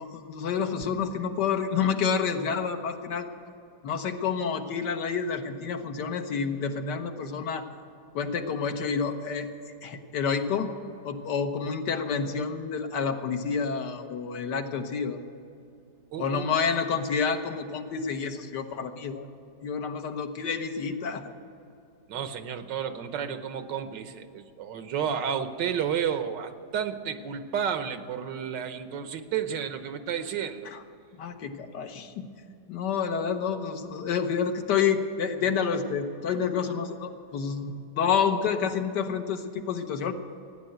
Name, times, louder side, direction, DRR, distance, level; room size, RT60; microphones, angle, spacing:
voice 1, 0.0-3.3 3.8-7.7 8.1-9.5 9.8-10.7 11.0-15.2 16.2-19.3 19.6-21.3 30.6-30.8 31.2-32.3 32.7-40.1, left 6 dB, 75° left, 6 dB, 1.7 m, -29 dB
voice 2, 16.1-16.5 22.1-30.7, right 8 dB, 90° right, 9 dB, 1.6 m, -31 dB
15.5 x 10.0 x 7.9 m, 2.6 s
omnidirectional pair, 1.9 m